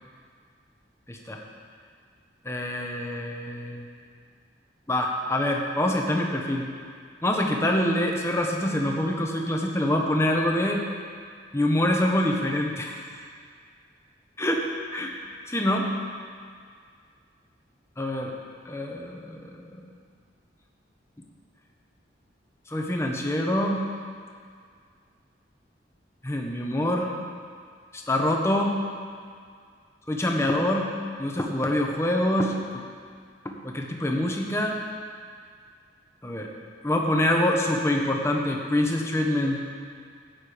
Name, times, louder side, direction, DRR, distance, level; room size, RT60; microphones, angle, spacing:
voice 1, 1.1-1.4 2.4-3.9 4.9-6.7 7.2-10.8 11.5-13.1 14.4-14.7 14.9-15.1 15.5-15.9 18.0-18.3 18.6-19.8 22.7-23.8 26.2-27.1 27.9-28.8 30.1-30.9 31.2-32.8 33.4-34.8 36.2-36.5 36.8-39.6, left 1 dB, 15° left, 1 dB, 1.1 m, -25 dB
14.0 x 9.1 x 5.1 m, 2.1 s
head